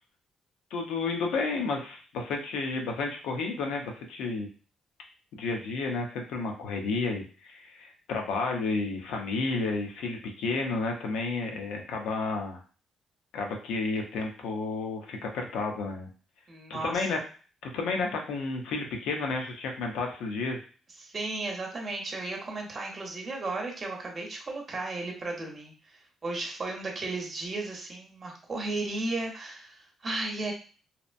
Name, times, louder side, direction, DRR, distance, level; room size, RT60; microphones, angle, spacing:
voice 1, 0.7-4.5 5.3-12.6 13.3-16.1 16.7-17.2 17.6-20.6, left 3 dB, 85° left, 2 dB, 0.6 m, -31 dB
voice 2, 16.5-17.0 21.0-30.5, right 2 dB, 35° right, 1 dB, 0.8 m, -35 dB
2.8 x 2.1 x 2.5 m, 0.38 s
cardioid pair, 90°, 0 cm